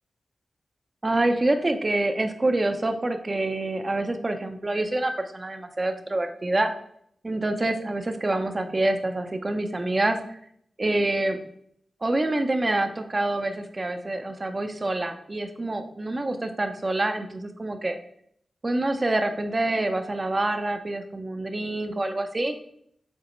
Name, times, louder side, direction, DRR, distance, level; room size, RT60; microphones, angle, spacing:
voice 1, 1.0-6.7 7.2-10.2 10.8-11.4 12.0-17.9 18.6-22.5, right 2 dB, 40° right, 6 dB, 0.8 m, -26 dB
7.4 x 4.1 x 3.2 m, 0.69 s
cardioid pair, 50°, 0 cm